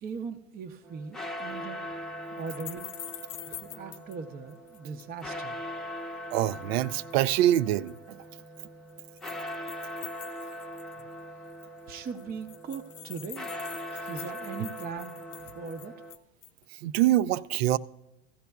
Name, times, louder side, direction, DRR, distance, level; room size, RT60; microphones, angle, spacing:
voice 1, 0.0-1.8 2.4-2.9 3.2-5.6 11.9-13.5 14.1-15.9, right 5 dB, 30° right, 0.7 m, -40 dB
sound 1, 0.8-16.2, left 1 dB, ahead, 0.8 m, -41 dB
sound 2, 2.5-4.2 4.5-5.2 6.6-7.4 7.7-8.0 8.6-11.1 11.5-11.6 11.8-11.9 12.1-16.6, left 14 dB, 55° left, 0.7 m, -45 dB
voice 2, 6.3-8.2 13.9-14.1 16.7-17.8, right 13 dB, 65° right, 0.5 m, -25 dB
16.5 x 14.0 x 2.3 m
hypercardioid pair, 90°, 33 cm